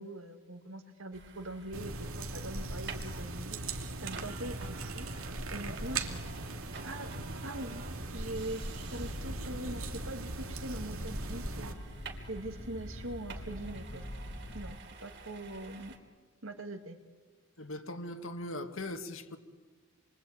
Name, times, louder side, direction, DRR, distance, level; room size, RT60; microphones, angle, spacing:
voice 1, 0.0-5.1 5.5-6.2 6.8-7.1 7.4-7.8 8.1-11.7 12.3-14.0 14.5-16.0 16.4-17.0, right 1 dB, 70° right, 6 dB, 2.4 m, -42 dB
sound 1, 1.1-16.0, right 4 dB, 55° right, 3.3 m, -50 dB
sound 2, 1.7-11.7, right 2 dB, 85° right, 2.6 m, -39 dB
sound 3, 8.9-14.8, left 1 dB, 50° left, 1.6 m, -44 dB
voice 2, 17.6-19.4, left 1 dB, 70° left, 6 dB, 2.1 m, -40 dB
28.0 x 23.0 x 9.0 m, 1.4 s
head